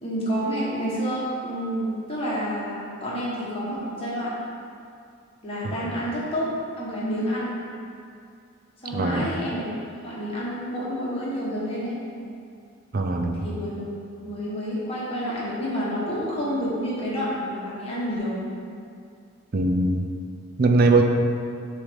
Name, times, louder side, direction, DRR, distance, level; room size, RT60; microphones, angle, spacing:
voice 1, 0.0-4.3 5.4-7.5 8.8-9.7 10.0-12.0 13.4-13.8 14.2-18.4, equal, 25° left, -8 dB, 1.4 m, -29 dB
voice 2, 8.9-9.3 12.9-13.5 19.5-20.0 20.6-21.0, right 3 dB, 45° right, 4 dB, 0.5 m, -21 dB
6.8 x 3.3 x 5.3 m, 2.4 s
head